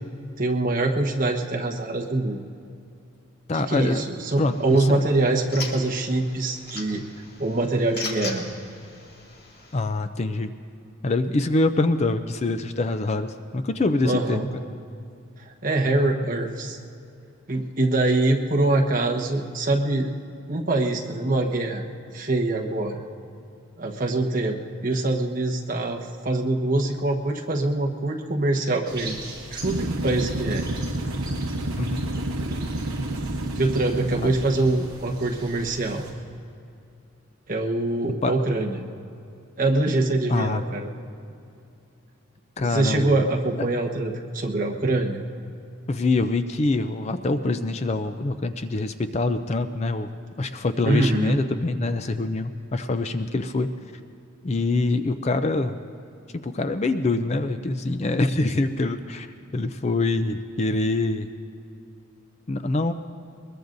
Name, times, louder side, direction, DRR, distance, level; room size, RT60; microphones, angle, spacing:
voice 1, 0.4-2.4 3.5-7.0 7.4-8.4 14.0-14.5 15.4-16.8 17.5-20.1 20.5-21.8 22.1-23.0 23.8-26.0 26.2-29.2 29.5-30.7 33.6-36.0 37.5-38.8 39.6-40.9 42.6-45.2 50.9-51.4, right 2 dB, 40° right, 1 dB, 1.2 m, -24 dB
voice 2, 3.5-4.0 4.4-5.0 9.7-10.5 11.0-14.5 31.8-32.1 34.2-34.3 38.2-38.3 40.3-40.6 42.6-43.3 43.6-43.7 45.9-50.1 50.4-53.7 54.4-55.8 56.3-59.3 59.5-61.3 62.5-62.9, left 2 dB, 30° left, 9 dB, 0.4 m, -25 dB
sound 1, 4.4-9.8, left 3 dB, 45° left, 2.2 m, -39 dB
sound 2, 28.8-36.1, right 1 dB, 20° right, 4.1 m, -40 dB
sound 3, 29.6-34.9, right 1 dB, 80° right, 0.9 m, -30 dB
23.0 x 21.0 x 2.6 m, 2.6 s
head